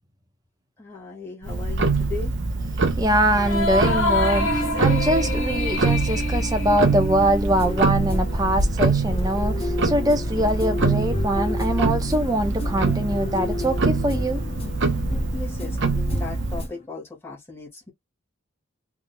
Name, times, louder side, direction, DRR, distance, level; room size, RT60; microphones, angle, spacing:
voice 1, 0.8-2.3 15.3-17.9, left 4 dB, 10° left, 1.8 m, -37 dB
Tick-tock, 1.4-16.7, right 3 dB, 55° right, 0.9 m, -24 dB
voice 2, 2.9-14.4, equal, 20° right, 0.9 m, -23 dB
sound 1, 3.3-8.1, left 1 dB, 70° left, 2.0 m, -27 dB
sound 2, 7.5-16.9, left 2 dB, 30° left, 0.9 m, -32 dB
3.6 x 3.6 x 2.3 m
head